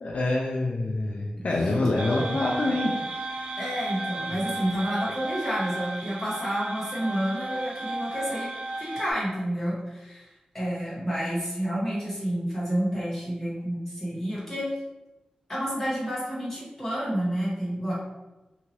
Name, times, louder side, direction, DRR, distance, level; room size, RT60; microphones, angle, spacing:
voice 1, 0.0-2.9 4.3-4.4, left 2 dB, 65° left, -2 dB, 0.4 m, -26 dB
sound 1, 2.0-9.1, right 2 dB, 80° right, 0.4 m, -34 dB
voice 2, 3.6-8.5 8.8-10.3 10.5-14.7 15.5-17.9, equal, 15° left, -8 dB, 1.4 m, -29 dB
2.8 x 2.6 x 3.0 m, 1.1 s
wide cardioid pair, 110°, 2 cm